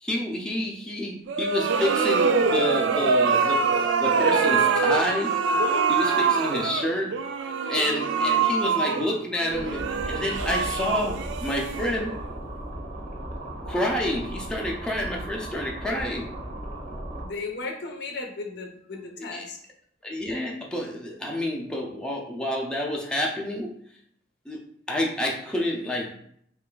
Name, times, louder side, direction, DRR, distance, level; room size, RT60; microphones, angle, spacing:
voice 1, 0.0-3.7 4.0-5.4 5.9-7.2 7.7-12.1 13.7-16.3 19.2-19.4 20.0-23.8 24.5-24.6 24.9-26.1, left 1 dB, 5° left, -2 dB, 0.5 m, -29 dB
sound 1, 1.3-12.3, right 5 dB, 80° right, 0.3 m, -24 dB
voice 2, 6.3-6.8 17.2-19.6, left 3 dB, 65° left, 4 dB, 0.6 m, -36 dB
sound 2, 9.5-17.3, right 1 dB, 55° right, 0.8 m, -36 dB
3.2 x 2.4 x 3.8 m, 0.66 s
head